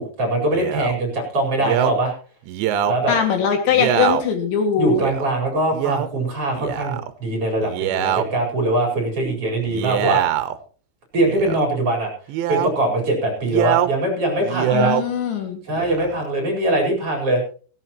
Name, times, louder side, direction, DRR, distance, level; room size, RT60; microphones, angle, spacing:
voice 1, 0.0-2.1 2.9-3.1 4.8-10.2 11.1-12.1 12.5-15.0 15.6-17.4, right 1 dB, 30° right, 0 dB, 5.1 m, -22 dB
Male speech man speaking, 0.5-0.9 1.6-1.9 2.5-3.0 3.7-4.2 5.0-5.2 5.7-6.1 6.5-7.1 7.6-8.2 9.6-10.6 11.2-11.7 12.3-12.7 13.4-13.9 14.4-15.0 15.7-16.3, right 11 dB, 75° right, 2.9 m, -23 dB
voice 2, 3.1-5.0 14.7-15.6, left 7 dB, 70° left, 5 dB, 4.2 m, -21 dB
17.0 x 17.0 x 3.0 m, 0.39 s
omnidirectional pair, 5.7 m